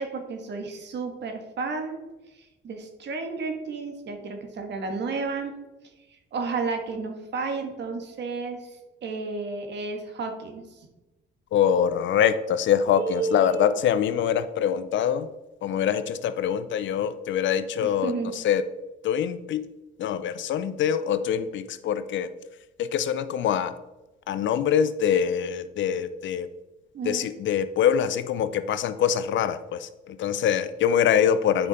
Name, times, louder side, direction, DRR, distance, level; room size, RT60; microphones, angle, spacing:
voice 1, 0.0-2.0 2.3-5.5 6.1-10.8 12.9-13.7 17.8-18.4 26.9-27.3, right 4 dB, 60° right, 5 dB, 1.6 m, -32 dB
voice 2, 11.5-15.3 15.6-18.1 18.4-18.6 19.0-19.7 20.0-22.3 22.8-23.7 24.3-26.5 27.0-31.7, left 9 dB, 70° left, 12 dB, 0.6 m, -24 dB
9.0 x 5.1 x 4.0 m, 1.1 s
cardioid pair, 90°, 20 cm